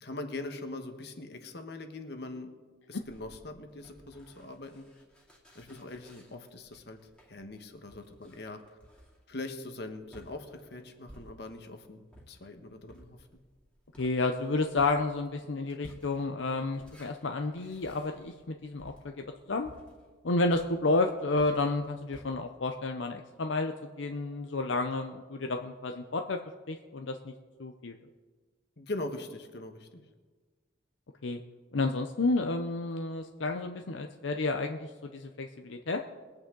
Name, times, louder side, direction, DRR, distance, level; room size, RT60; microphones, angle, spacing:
voice 1, 0.0-2.5 2.9-4.8 5.5-7.0 7.3-8.6 9.3-13.2 28.8-30.0, left 2 dB, 60° left, 6 dB, 1.3 m, -41 dB
sound 1, 3.0-11.7 12.1-22.3, equal, 5° left, 2.3 m, -56 dB
voice 2, 14.0-19.7 20.2-26.4 26.7-27.3 27.6-27.9 31.2-31.4 31.7-36.0, left 3 dB, 80° left, 5 dB, 0.7 m, -31 dB
21.5 x 8.8 x 3.8 m, 1.4 s
head